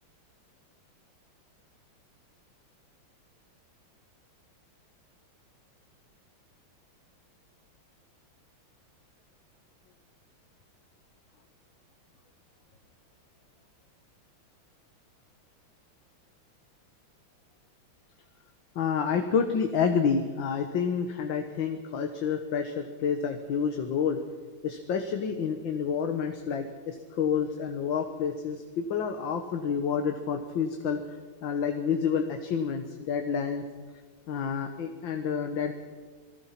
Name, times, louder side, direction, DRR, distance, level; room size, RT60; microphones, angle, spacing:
voice 1, 18.8-24.2 24.6-31.0 31.4-33.6 34.3-35.7, left 6 dB, 65° left, 5 dB, 2.0 m, -29 dB
26.5 x 20.5 x 5.9 m, 1.4 s
omnidirectional pair, 2.3 m